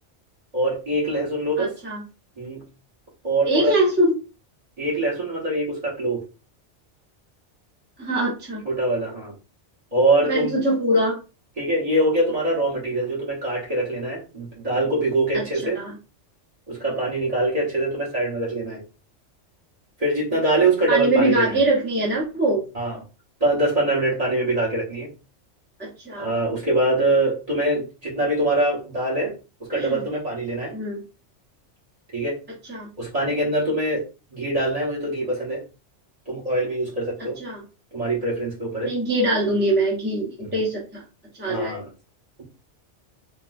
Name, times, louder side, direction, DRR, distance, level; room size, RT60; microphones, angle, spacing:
voice 1, 0.5-1.7 2.4-2.6 3.2-3.7 4.8-6.2 8.6-9.3 9.9-10.5 11.6-15.8 16.7-18.8 20.0-21.6 22.7-23.0 23.4-25.1 26.2-29.3 29.6-30.7 32.1-32.4 33.0-34.0 34.3-35.6 36.3-37.4 37.9-38.9 40.4-40.6 41.5-41.9, right 2 dB, 35° right, -5 dB, 1.2 m, -23 dB
voice 2, 1.6-2.0 3.5-4.1 8.0-8.6 10.2-11.2 15.3-15.9 20.9-22.6 25.8-26.3 29.7-30.0 30.7-31.0 32.7-32.9 37.4-37.6 38.8-41.0 41.4-41.8, right 1 dB, 10° right, -4 dB, 0.8 m, -23 dB
3.8 x 2.2 x 2.5 m, 0.32 s
omnidirectional pair, 1.2 m